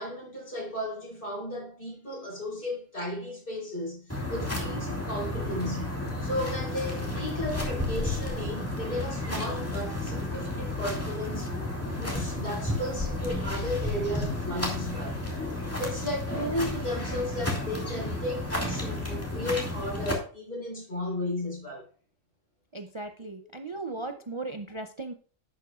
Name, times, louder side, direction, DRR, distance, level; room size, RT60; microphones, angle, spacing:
voice 1, 0.0-11.5 11.9-15.2 15.5-21.9, left 1 dB, 45° left, 4.3 m, -34 dB
sound 1, 4.1-20.1, left 1 dB, 10° left, 2.1 m, -32 dB
voice 2, 22.7-25.1, right 3 dB, 50° right, 0.3 m, -37 dB
11.0 x 8.4 x 2.4 m
omnidirectional pair, 1.3 m